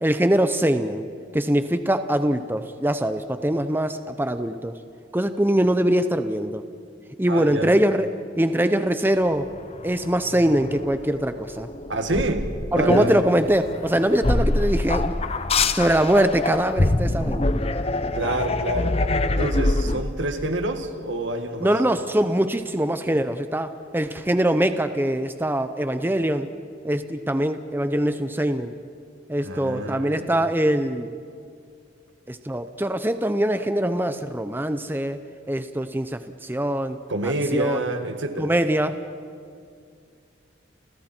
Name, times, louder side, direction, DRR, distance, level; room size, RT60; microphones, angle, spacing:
voice 1, 0.0-1.1 1.3-4.7 5.1-6.6 7.2-8.1 8.4-9.5 9.8-11.7 12.7-15.2 15.7-17.5 21.6-26.5 26.8-28.7 29.3-31.1 32.3-35.2 35.5-37.0 37.2-37.8 38.4-39.0, right 1 dB, 10° right, 10 dB, 0.7 m, -23 dB
voice 2, 7.3-7.7 11.9-12.5 12.8-13.2 18.1-21.8 29.4-30.5 37.1-38.5, right 1 dB, 80° right, 6 dB, 1.9 m, -28 dB
sound 1, 9.6-20.0, left 2 dB, 35° left, 0.8 m, -25 dB
30.0 x 29.0 x 4.5 m, 2.3 s
head